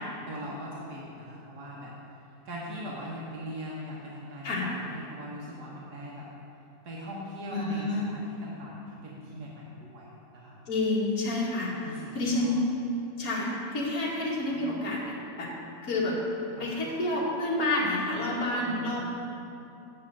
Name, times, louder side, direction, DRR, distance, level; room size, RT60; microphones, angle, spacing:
voice 1, 0.0-1.9 2.4-6.3 6.8-10.6 11.8-12.6 16.5-16.7 18.7-19.0, equal, 75° right, -5 dB, 1.7 m, -40 dB
voice 2, 7.5-8.1 10.7-12.7 13.2-15.5 15.8-16.2 16.6-19.1, left 2 dB, 65° left, -5 dB, 2.1 m, -29 dB
7.6 x 5.6 x 7.4 m, 2.7 s
omnidirectional pair, 1.7 m